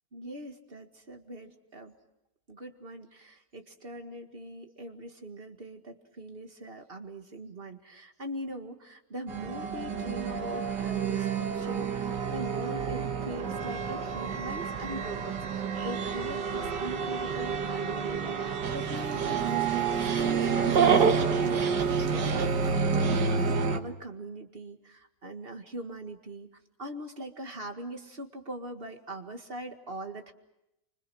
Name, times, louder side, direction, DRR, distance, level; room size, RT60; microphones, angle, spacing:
voice 1, 0.1-1.9 2.5-21.8 22.1-26.5 26.8-30.3, right 1 dB, 35° right, 5 dB, 2.0 m, -42 dB
sound 1, 9.3-23.8, right 5 dB, 90° right, 1.9 m, -30 dB
Dog, 18.6-23.7, right 6 dB, 70° right, 2.2 m, -29 dB
30.0 x 25.0 x 6.2 m, 0.86 s
omnidirectional pair, 1.8 m